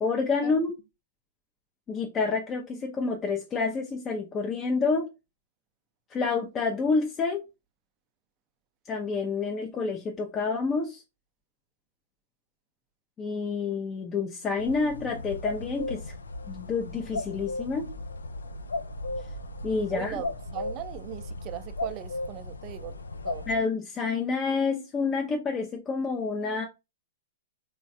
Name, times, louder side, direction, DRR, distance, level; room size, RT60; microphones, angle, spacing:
voice 1, 0.0-0.7 1.9-5.1 6.1-7.4 8.9-11.0 13.2-16.1 16.5-17.9 19.6-20.2 23.5-26.6, left 4 dB, 25° left, 0.5 m, -28 dB
sound 1, 14.6-23.6, left 2 dB, 90° left, 0.3 m, -36 dB
voice 2, 19.9-20.3 20.5-22.9 23.2-23.5, right 13 dB, 35° right, 0.4 m, -38 dB
3.1 x 2.2 x 2.7 m
hypercardioid pair, 125°, 0 cm